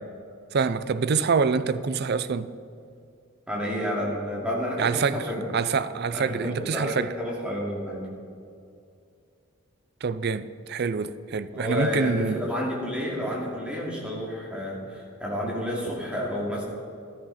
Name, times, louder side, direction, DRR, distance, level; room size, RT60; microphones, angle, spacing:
voice 1, 0.5-2.5 4.8-5.3 5.5-7.1 10.0-12.4, right 5 dB, 50° right, 0.4 m, -26 dB
voice 2, 3.5-5.4 6.1-8.0 11.5-16.6, equal, 5° right, 2.5 m, -30 dB
14.0 x 12.5 x 4.2 m
head